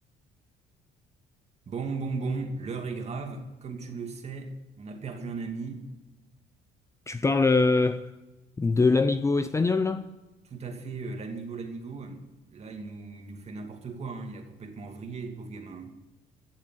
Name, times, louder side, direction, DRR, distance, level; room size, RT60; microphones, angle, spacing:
voice 1, 1.7-5.9 10.4-15.9, right 4 dB, 40° right, 2.5 m, -36 dB
voice 2, 7.1-8.1 8.6-10.1, left 3 dB, 15° left, 0.6 m, -23 dB
16.5 x 7.3 x 9.1 m
cardioid pair, 110°, 17 cm